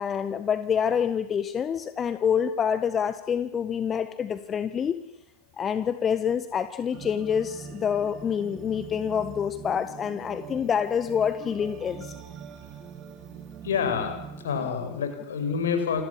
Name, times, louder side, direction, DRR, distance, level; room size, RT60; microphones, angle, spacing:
voice 1, 0.0-5.0 5.6-12.1, left 7 dB, 25° left, 11 dB, 1.5 m, -27 dB
sound 1, 6.9-14.7, right 7 dB, 30° right, 3.3 m, -43 dB
voice 2, 13.6-14.2 14.4-16.0, left 6 dB, 60° left, 6 dB, 7.4 m, -27 dB
29.0 x 21.5 x 9.0 m, 0.88 s
figure-of-eight pair, 90°, 0 cm